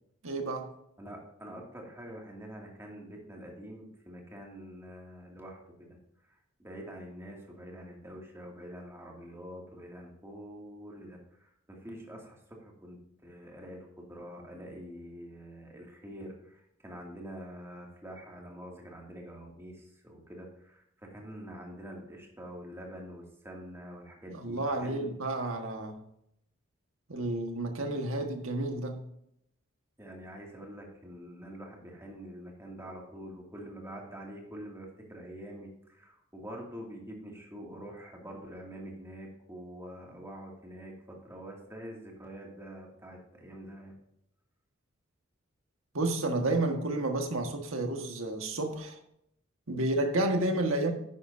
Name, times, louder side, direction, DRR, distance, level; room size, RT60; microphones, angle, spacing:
voice 1, 0.2-0.7 24.3-26.0 27.1-29.0 45.9-49.0 49.7-50.9, right 2 dB, 75° right, 1.5 m, -31 dB
voice 2, 1.0-6.0 6.3-25.1 30.0-43.9, equal, 15° right, 2.3 m, -46 dB
10.5 x 9.7 x 2.7 m
head